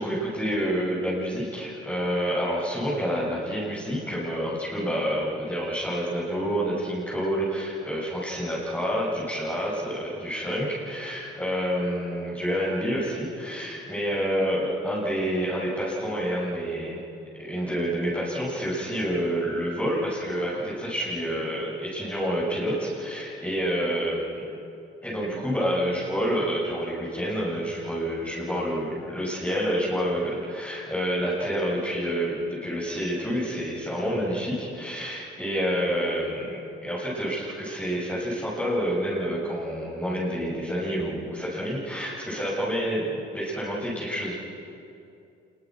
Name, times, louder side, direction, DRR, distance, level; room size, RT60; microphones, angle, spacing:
voice 1, 0.0-17.0 17.4-24.4 25.0-44.3, equal, 10° left, -9 dB, 7.6 m, -28 dB
27.0 x 23.0 x 6.4 m, 2.6 s
cardioid pair, 90°, 20 cm